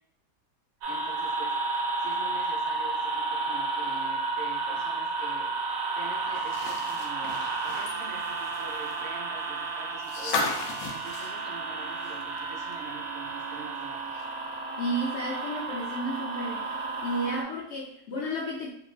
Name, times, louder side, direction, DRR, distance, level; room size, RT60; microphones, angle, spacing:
sound 1, 0.8-17.4, right 3 dB, 75° right, 1.0 m, -32 dB
voice 1, 0.9-5.5 5.9-14.3, right 3 dB, 55° right, -2 dB, 0.9 m, -45 dB
sound 2, 6.3-12.4 12.7-12.8 14.2-14.3, left 3 dB, 85° left, 1.1 m, -36 dB
voice 2, 14.8-16.7 17.0-18.7, right 1 dB, 65° left, -2 dB, 0.7 m, -32 dB
3.2 x 2.3 x 3.2 m, 0.74 s
omnidirectional pair, 1.5 m